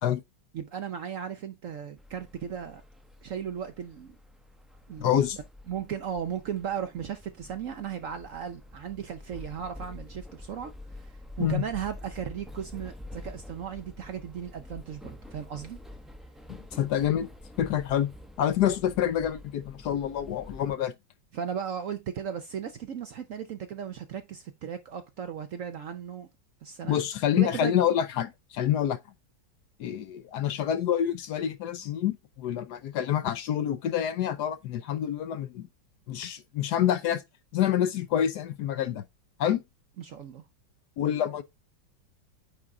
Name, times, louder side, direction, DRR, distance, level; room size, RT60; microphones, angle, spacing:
voice 1, 0.5-2.8 3.2-4.2 4.9-5.1 5.7-15.8 21.3-26.3 26.6-27.0 27.4-27.7 40.0-40.4, right 8 dB, 65° right, 0.8 m, -36 dB
sound 1, 2.0-20.8, left 1 dB, ahead, 0.4 m, -47 dB
voice 2, 5.0-5.4 11.4-11.6 16.5-17.3 17.6-18.1 18.4-20.9 26.9-29.0 29.8-35.7 36.1-37.2 37.5-39.1 39.4-39.6 41.0-41.4, left 10 dB, 70° left, 1.1 m, -27 dB
8.8 x 3.6 x 3.7 m
omnidirectional pair, 2.0 m